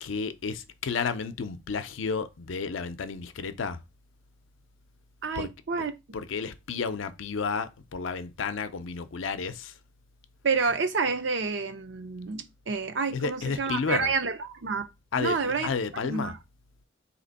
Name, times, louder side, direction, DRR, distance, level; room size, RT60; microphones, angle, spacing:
voice 1, 0.0-3.8 5.3-5.5 6.1-9.8 13.1-14.1 15.1-16.3, left 5 dB, 85° left, 0.5 m, -32 dB
voice 2, 5.2-5.9 10.4-14.9 15.2-15.7 16.0-16.4, right 4 dB, 65° right, 0.6 m, -29 dB
4.2 x 2.9 x 4.0 m
head